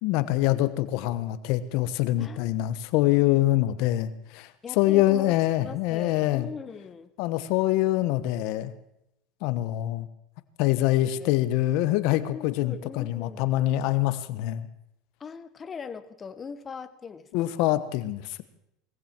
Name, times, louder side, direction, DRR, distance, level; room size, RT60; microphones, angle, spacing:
voice 1, 0.0-4.5 4.8-6.5 7.2-8.7 9.4-10.1 10.6-14.7 17.3-18.4, left 15 dB, 65° left, 13 dB, 1.2 m, -25 dB
voice 2, 2.2-2.5 4.6-7.1 11.1-11.3 12.3-13.5 15.2-17.5, left 6 dB, 25° left, 12 dB, 1.2 m, -40 dB
20.0 x 15.0 x 4.6 m, 0.83 s
supercardioid pair, 115°, 0 cm